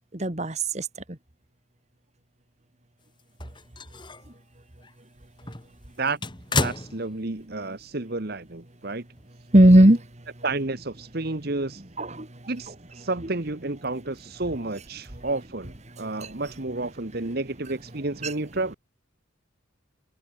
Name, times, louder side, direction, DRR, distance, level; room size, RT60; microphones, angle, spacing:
voice 1, 0.1-1.2 9.5-10.1 12.0-12.3 16.0-16.3 18.2-18.3, right 1 dB, 35° right, 1.9 m, -18 dB
sound 1, 3.2-4.3 4.8-4.9 5.4-7.6 7.8-7.9 9.2-9.3, left 3 dB, 20° left, 2.4 m, -32 dB
voice 2, 6.5-9.0 10.4-11.8 12.5-18.8, right 2 dB, 50° right, 1.3 m, -31 dB
head